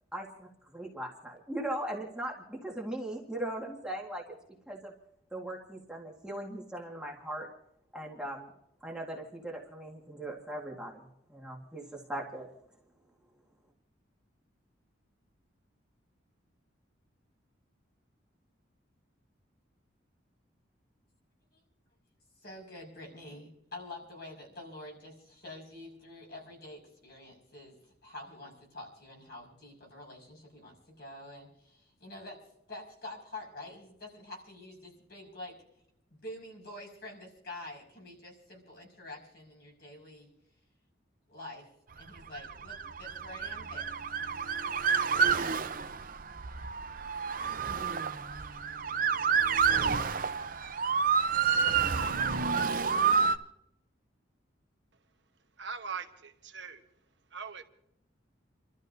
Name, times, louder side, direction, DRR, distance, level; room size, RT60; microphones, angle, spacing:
voice 1, 0.1-4.4 4.7-4.9 5.3-7.5 7.9-8.5 8.8-12.5, right 1 dB, 5° right, -2 dB, 1.7 m, -39 dB
voice 2, 22.4-27.8 28.0-32.4 32.7-35.6 36.2-40.3 41.3-41.7 42.0-44.0 44.9-45.0, left 2 dB, 50° left, 0 dB, 5.5 m, -47 dB
Motor vehicle (road) / Siren, 42.2-53.4, right 6 dB, 45° right, 0.7 m, -29 dB
voice 3, 55.6-56.9 57.3-57.6, right 6 dB, 65° right, 6 dB, 1.1 m, -41 dB
30.0 x 13.0 x 2.7 m, 0.76 s
head